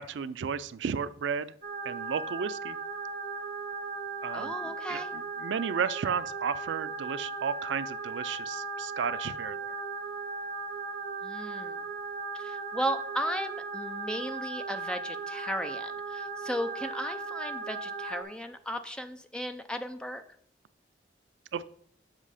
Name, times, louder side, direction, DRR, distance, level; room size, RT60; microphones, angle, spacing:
voice 1, 0.0-1.5 1.8-2.8 4.2-9.7 21.5-21.7, right 6 dB, 75° right, 15 dB, 0.4 m, -33 dB
sound 1, 1.6-18.2, right 4 dB, 50° right, 1.1 m, -37 dB
voice 2, 4.3-5.1 11.2-11.8 12.3-20.2, equal, 5° left, 7 dB, 0.4 m, -35 dB
7.6 x 5.6 x 4.9 m, 0.65 s
head